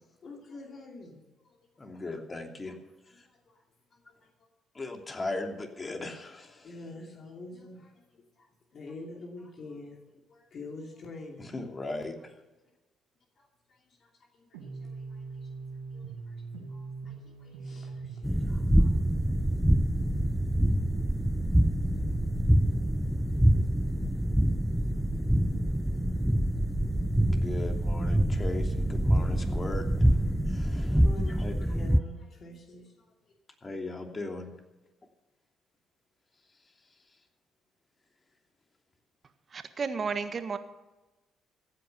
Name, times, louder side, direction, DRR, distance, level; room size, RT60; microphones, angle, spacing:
voice 1, 0.2-1.6 1.9-2.0 2.6-2.8 3.1-3.6 3.9-4.3 6.5-11.6 13.4-16.4 16.7-19.0 30.8-33.1, left 2 dB, 55° left, 0 dB, 2.7 m, -47 dB
voice 2, 1.8-2.7 4.7-6.7 11.5-12.1 27.2-30.2 30.5-31.5 33.6-34.5, left 2 dB, 30° left, 3 dB, 2.9 m, -38 dB
sound 1, 14.5-30.5, right 6 dB, 90° right, 2.3 m, -40 dB
sound 2, 18.2-32.0, equal, 5° right, 0.7 m, -26 dB
voice 3, 39.5-40.6, right 5 dB, 45° right, 10 dB, 1.5 m, -32 dB
15.5 x 9.3 x 6.7 m, 1.1 s
hypercardioid pair, 55°, 0 cm